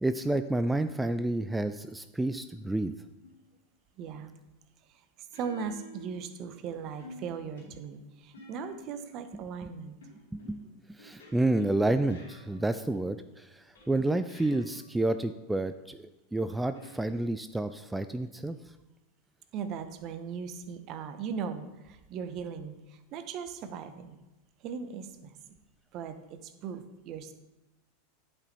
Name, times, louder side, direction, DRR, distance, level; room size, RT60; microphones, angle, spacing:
voice 1, 0.0-2.9 9.6-9.7 10.3-10.6 10.9-18.6, right 2 dB, 5° right, 10 dB, 0.3 m, -30 dB
sound 1, 3.2-3.6 5.3-6.6 7.0-9.2 10.0-13.0 13.8-15.0 16.7-17.6, left 2 dB, 70° left, 2.3 m, -52 dB
voice 2, 4.0-4.3 5.2-10.0 19.5-24.2 24.6-25.4 25.9-27.3, right 6 dB, 40° right, 10 dB, 0.8 m, -38 dB
11.0 x 5.4 x 4.0 m, 1.0 s
figure-of-eight pair, 85°, 0 cm